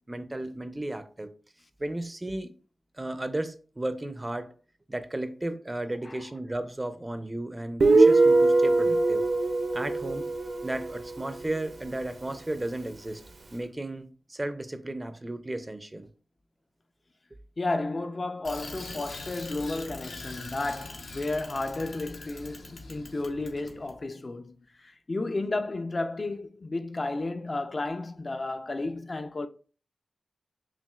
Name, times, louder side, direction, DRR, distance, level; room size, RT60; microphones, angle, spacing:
voice 1, 0.1-1.3 1.8-2.5 3.0-4.5 4.9-9.3 9.7-10.3 10.6-13.2 13.5-16.1, right 1 dB, 20° right, 0.5 m, -34 dB
Guitar, 7.8-11.3, right 2 dB, 60° right, 0.6 m, -22 dB
voice 2, 17.6-29.5, left 2 dB, 40° left, 0.4 m, -32 dB
Bicycle, 18.4-23.9, left 2 dB, 85° left, 0.8 m, -43 dB
5.7 x 2.4 x 2.3 m
cardioid pair, 70°, 0 cm